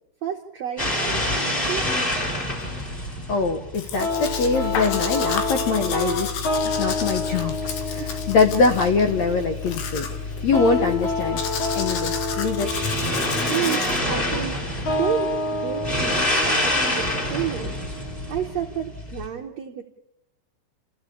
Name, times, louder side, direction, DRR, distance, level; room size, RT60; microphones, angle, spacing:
voice 1, 0.2-1.9 7.9-8.1 12.1-12.2 13.5-17.7 18.3-19.8, right 10 dB, 70° right, 3 dB, 1.6 m, -31 dB
sound 1, 0.8-19.3, left 1 dB, 15° left, 4.4 m, -28 dB
voice 2, 3.3-6.3 6.8-10.1 10.4-11.4 11.7-12.9, left 4 dB, 65° left, 6 dB, 1.8 m, -23 dB
Domestic sounds home sounds, 3.7-14.0, left 7 dB, 85° left, 3.8 m, -33 dB
sound 2, 4.0-19.0, left 2 dB, 45° left, 5.5 m, -29 dB
29.0 x 15.0 x 8.5 m, 0.89 s
omnidirectional pair, 4.5 m